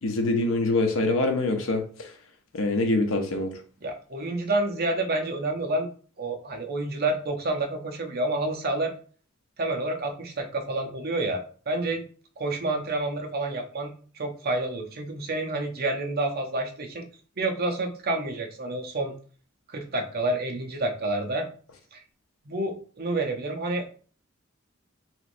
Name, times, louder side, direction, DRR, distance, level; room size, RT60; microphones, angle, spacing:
voice 1, 0.0-2.1 2.5-3.5, left 2 dB, 75° left, 4 dB, 0.7 m, -25 dB
voice 2, 3.8-5.9 6.2-8.9 9.6-12.0 12.4-17.0 17.4-19.1 19.7-21.5 21.9-22.0 22.5-23.9, right 2 dB, 50° right, 4 dB, 0.6 m, -29 dB
3.2 x 3.0 x 2.5 m, 0.40 s
head